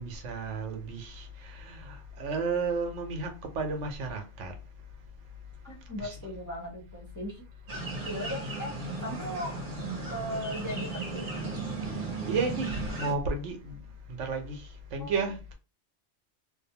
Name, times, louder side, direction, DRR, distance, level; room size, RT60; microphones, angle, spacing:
voice 1, 0.0-4.5 6.0-6.1 12.3-13.8 14.1-15.5, right 4 dB, 90° right, 1.0 m, -33 dB
voice 2, 5.6-7.4 8.0-8.7 9.0-9.7 10.1-11.2 15.0-15.5, equal, 20° left, 0.6 m, -38 dB
sound 1, 7.7-13.1, right 2 dB, 50° right, 0.9 m, -36 dB
2.5 x 2.0 x 2.7 m
omnidirectional pair, 1.2 m